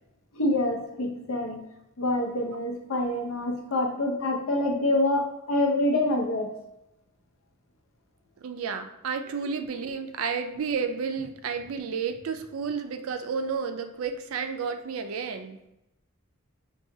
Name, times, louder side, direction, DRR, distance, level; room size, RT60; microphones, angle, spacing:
voice 1, 0.3-1.6 2.0-6.5, left 1 dB, 75° left, 2 dB, 0.6 m, -26 dB
voice 2, 8.4-15.7, right 5 dB, 85° right, 7 dB, 0.4 m, -31 dB
3.9 x 2.3 x 2.6 m, 0.87 s
head